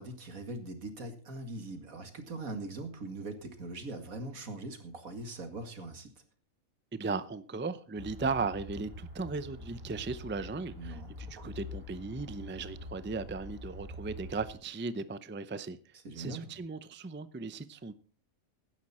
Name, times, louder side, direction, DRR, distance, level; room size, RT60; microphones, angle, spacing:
voice 1, 0.0-6.1 10.7-11.6 16.0-16.6, right 2 dB, 90° right, 2.5 m, -42 dB
voice 2, 6.9-15.8 16.2-17.9, right 4 dB, 15° right, 0.3 m, -37 dB
sound 1, 8.0-14.5, left 1 dB, 40° right, 6.5 m, -45 dB
16.0 x 11.5 x 4.3 m
omnidirectional pair, 1.4 m